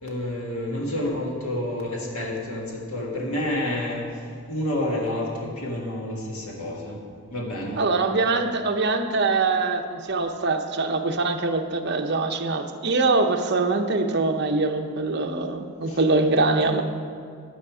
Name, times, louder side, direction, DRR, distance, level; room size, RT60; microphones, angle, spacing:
voice 1, 0.0-4.2 4.5-7.0 7.3-7.8 15.9-16.0 16.6-16.7, left 1 dB, 75° left, -1 dB, 1.8 m, -29 dB
voice 2, 7.8-16.8, right 3 dB, 50° right, 5 dB, 0.8 m, -23 dB
11.0 x 9.4 x 4.9 m, 2.4 s
head